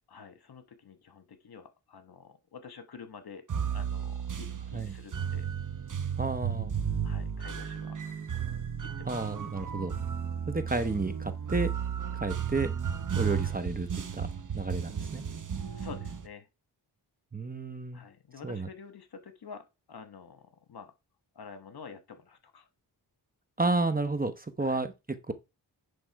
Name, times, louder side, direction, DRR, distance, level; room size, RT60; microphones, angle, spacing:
voice 1, 0.1-5.5 7.0-8.0 8.8-9.3 15.8-16.5 17.9-20.9 21.3-22.7 24.6-24.8, left 5 dB, 65° left, 1.3 m, -48 dB
sound 1, 3.5-16.3, right 7 dB, 45° right, 1.0 m, -34 dB
voice 2, 6.2-6.7 9.1-9.9 10.5-11.7 12.1-12.7 13.1-14.3 14.5-15.2 17.3-18.0 18.4-18.7 23.6-24.9 25.3-25.4, right 3 dB, 20° right, 0.9 m, -31 dB
10.0 x 3.5 x 4.6 m
cardioid pair, 70°, 42 cm